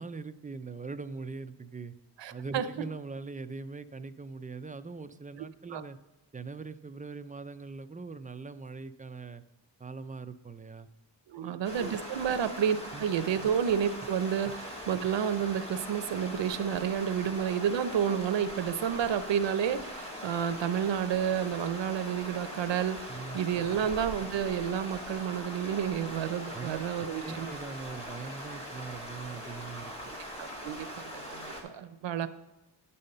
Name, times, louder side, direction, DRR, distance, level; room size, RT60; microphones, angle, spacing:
voice 1, 0.0-1.9 2.3-6.0 6.3-9.4 9.8-10.9 11.3-11.9 12.9-13.0 23.1-23.4 26.5-29.9, right 4 dB, 20° right, 11 dB, 0.3 m, -41 dB
voice 2, 2.2-2.7 5.7-5.8 11.3-27.5 30.1-30.8 31.1-32.3, right 8 dB, 90° right, 12 dB, 0.7 m, -30 dB
sound 1, 11.6-31.6, equal, 15° left, 1.8 m, -41 dB
8.9 x 5.6 x 6.5 m, 0.99 s
wide cardioid pair, 125°, 42 cm